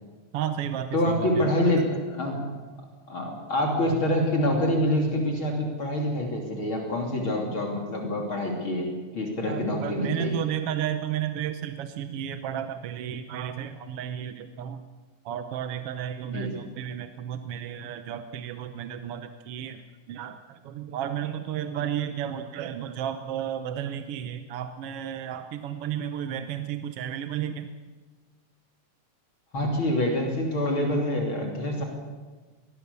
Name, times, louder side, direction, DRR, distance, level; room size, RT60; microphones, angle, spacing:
voice 1, 0.3-1.5 9.5-14.8 15.2-27.7, right 10 dB, 65° right, 9 dB, 1.6 m, -33 dB
voice 2, 0.9-2.5 3.1-10.4 16.3-16.6 29.5-31.8, left 1 dB, 45° left, 1 dB, 3.6 m, -26 dB
24.0 x 20.0 x 6.9 m, 1.3 s
omnidirectional pair, 3.3 m